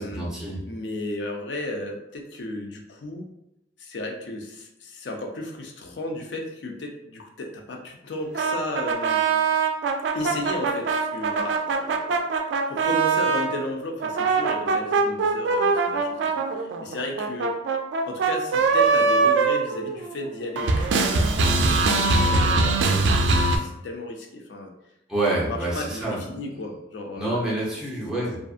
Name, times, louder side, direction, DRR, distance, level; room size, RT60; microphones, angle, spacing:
voice 1, 0.0-0.6 25.1-26.2 27.2-28.4, right 2 dB, 5° right, -7 dB, 0.7 m, -27 dB
voice 2, 0.7-3.2 3.8-9.3 10.1-12.2 12.7-16.1 16.3-17.5 18.0-24.7 25.4-27.6, left 1 dB, 75° left, 2 dB, 0.5 m, -34 dB
sound 1, 8.3-13.5 14.0-20.3 20.6-23.6, right 4 dB, 80° right, 0.3 m, -22 dB
2.5 x 2.5 x 2.4 m, 0.84 s
head